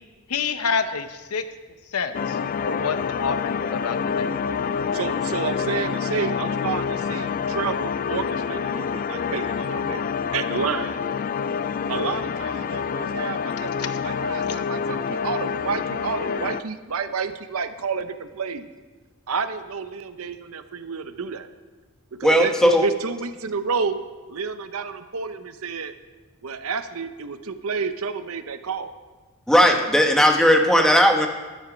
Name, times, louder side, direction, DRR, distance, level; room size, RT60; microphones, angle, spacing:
voice 1, 0.3-1.4 1.9-2.4 2.7-4.4 13.8-14.0 14.5-14.6, left 5 dB, 80° left, 10 dB, 0.8 m, -28 dB
sound 1, 2.1-16.6, left 6 dB, 40° left, 0.3 m, -27 dB
voice 2, 4.9-10.0 10.3-11.0 11.9-18.7 19.3-21.5 22.2-24.0 24.3-25.9 26.4-28.9, right 5 dB, 70° right, 10 dB, 0.7 m, -30 dB
voice 3, 22.2-22.8 29.5-31.3, equal, 5° left, 3 dB, 1.1 m, -17 dB
13.0 x 9.4 x 5.1 m, 1.3 s
head